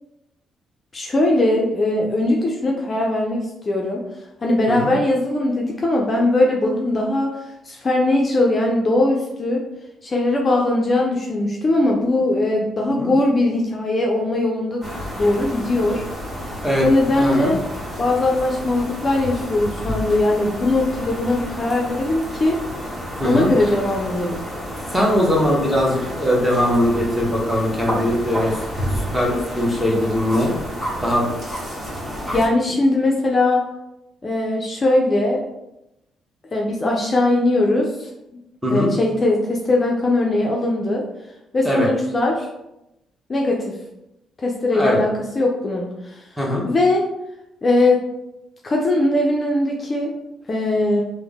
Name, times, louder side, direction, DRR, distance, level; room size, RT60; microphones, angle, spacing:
voice 1, 0.9-4.0 4.4-7.3 7.6-9.6 10.0-16.0 16.8-17.6 18.0-22.6 23.2-24.4 32.3-33.6 34.2-35.5 36.5-38.1 38.7-41.0 41.5-42.5 43.3-43.8 44.4-46.2 46.6-47.0 47.6-48.0 48.6-50.1 50.5-51.0, left 2 dB, 35° left, -1 dB, 0.5 m, -20 dB
sound 1, 14.8-32.5, equal, 25° right, 1.4 m, -30 dB
voice 2, 17.2-17.5 23.2-23.5 24.9-28.6 29.0-30.5 31.0-31.2 38.6-38.9 41.6-41.9 44.7-45.0 46.4-46.6, left 1 dB, 5° right, -3 dB, 1.0 m, -20 dB
3.5 x 2.0 x 3.5 m, 0.90 s
cardioid pair, 90°, 0 cm